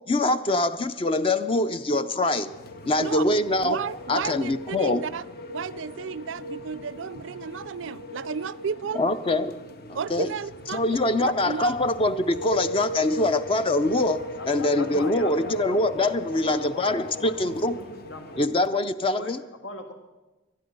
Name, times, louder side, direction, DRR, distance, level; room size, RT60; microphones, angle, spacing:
voice 1, 0.1-2.5 2.9-3.8 4.1-5.0 8.9-9.6 9.9-10.3 10.7-17.7 18.4-19.4, left 2 dB, 30° left, 11 dB, 0.5 m, -24 dB
sound 1, 2.4-18.4, left 1 dB, 55° left, 0.9 m, -38 dB
voice 2, 3.6-9.0 9.9-11.7, right 6 dB, 80° right, 19 dB, 0.4 m, -33 dB
voice 3, 14.4-15.8 16.4-16.9 17.2-18.4 19.2-19.3 19.6-19.9, left 2 dB, 75° left, 5 dB, 1.9 m, -39 dB
19.0 x 12.5 x 5.3 m, 1.1 s
head